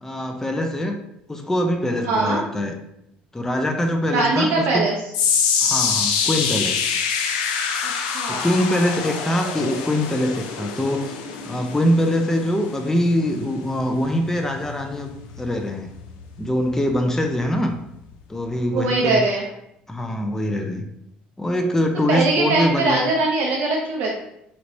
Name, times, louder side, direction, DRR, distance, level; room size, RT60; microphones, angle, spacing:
voice 1, 0.0-1.0 1.3-2.7 3.3-4.9 5.6-6.9 8.3-11.2 11.5-15.9 16.4-17.8 18.3-19.3 19.9-20.8 21.4-23.1, left 1 dB, 10° left, 4 dB, 0.4 m, -23 dB
voice 2, 2.0-2.4 4.1-4.9 7.8-8.5 18.7-19.4 22.1-24.2, right 3 dB, 70° right, -2 dB, 0.5 m, -21 dB
sound 1, 5.1-17.5 17.8-18.1 18.8-18.9, left 6 dB, 85° left, 0.4 m, -26 dB
3.1 x 2.8 x 2.6 m, 0.81 s
hypercardioid pair, 65°, 4 cm